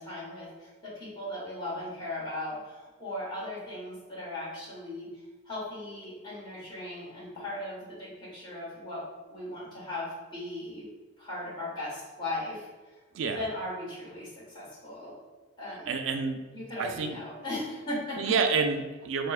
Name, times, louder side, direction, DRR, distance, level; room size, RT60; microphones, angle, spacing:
voice 1, 0.0-5.1 5.4-9.0 9.3-10.8 11.2-12.6 13.3-14.3 14.5-15.2 15.6-15.9 16.5-18.3, left 1 dB, 25° left, -7 dB, 1.3 m, -37 dB
voice 2, 15.7-17.2 18.2-19.3, right 5 dB, 70° right, 6 dB, 0.3 m, -29 dB
4.3 x 2.1 x 2.3 m, 1.2 s
head